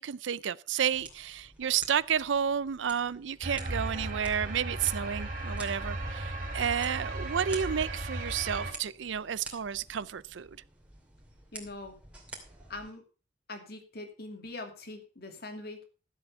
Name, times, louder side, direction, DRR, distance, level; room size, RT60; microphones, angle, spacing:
voice 1, 0.0-10.6, right 8 dB, 75° right, 0.5 m, -31 dB
sound 1, 0.9-12.9, right 2 dB, 5° right, 2.5 m, -50 dB
sound 2, 3.4-8.7, right 2 dB, 45° right, 2.7 m, -36 dB
voice 2, 11.5-12.0 12.7-13.0 13.5-15.8, left 2 dB, 55° left, 2.6 m, -42 dB
13.0 x 7.9 x 5.4 m
head